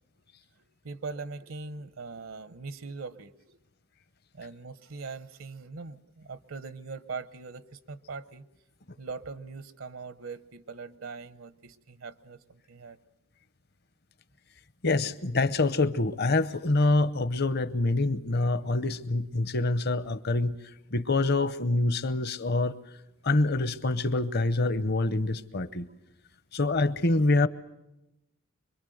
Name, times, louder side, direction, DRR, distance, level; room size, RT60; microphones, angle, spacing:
voice 1, 0.8-3.6 4.3-8.5 9.0-13.0, right 4 dB, 75° right, 14 dB, 0.9 m, -41 dB
voice 2, 14.8-20.6 20.9-22.8 23.2-25.9 26.5-27.5, left 2 dB, 50° left, 15 dB, 0.8 m, -26 dB
25.5 x 23.0 x 7.9 m, 0.90 s
head